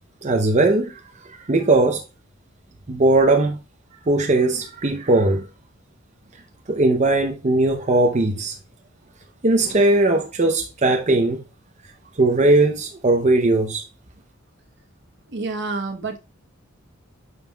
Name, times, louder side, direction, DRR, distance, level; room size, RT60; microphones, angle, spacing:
voice 1, 0.2-1.0 1.3-2.0 2.9-3.6 4.1-5.5 6.7-8.5 9.4-11.4 12.2-13.8, right 2 dB, 35° right, 0.7 m, -19 dB
voice 2, 15.3-16.2, right 3 dB, 60° right, 1.1 m, -28 dB
9.4 x 5.6 x 2.3 m
head